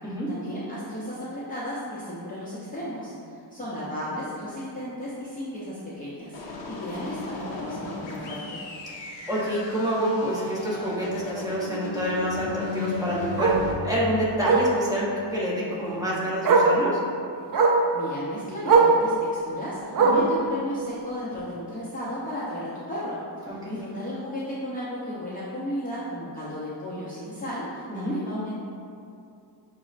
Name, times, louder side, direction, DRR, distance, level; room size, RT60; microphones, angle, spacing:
voice 1, 0.3-8.6 17.9-28.6, equal, 20° left, -10 dB, 0.5 m, -34 dB
sound 1, 6.3-13.7, left 2 dB, 80° left, 0.7 m, -36 dB
Bark, 6.9-7.1 7.5-7.6 8.0-8.1 8.4-8.5 9.9-10.0 12.5-12.6 13.4-13.6 14.4-14.7 15.9-16.0 16.4-16.8 17.5-17.9 18.6-19.0 19.9-20.4 21.3-21.4, right 4 dB, 50° right, 0.4 m, -19 dB
voice 2, 9.3-17.0 20.0-20.2 23.5-23.8 27.9-28.2, equal, 10° right, -8 dB, 0.8 m, -28 dB
6.0 x 2.0 x 2.4 m, 2.5 s
wide cardioid pair, 125°, 44 cm